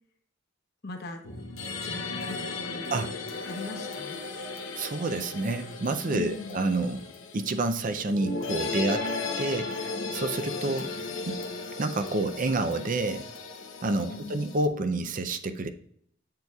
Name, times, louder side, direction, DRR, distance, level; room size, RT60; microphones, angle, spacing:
voice 1, 0.8-1.2 1.8-2.9 3.4-4.2 6.1-6.6 10.6-10.8 14.0-14.5, left 3 dB, 55° left, 4 dB, 1.0 m, -39 dB
sound 1, 1.2-14.7, left 3 dB, 90° left, 0.9 m, -36 dB
voice 2, 4.8-7.1 7.3-9.1 9.4-10.9 11.3-11.4 11.8-13.2 13.8-15.7, right 2 dB, 45° right, 10 dB, 0.5 m, -29 dB
8.0 x 6.7 x 2.4 m, 0.64 s
head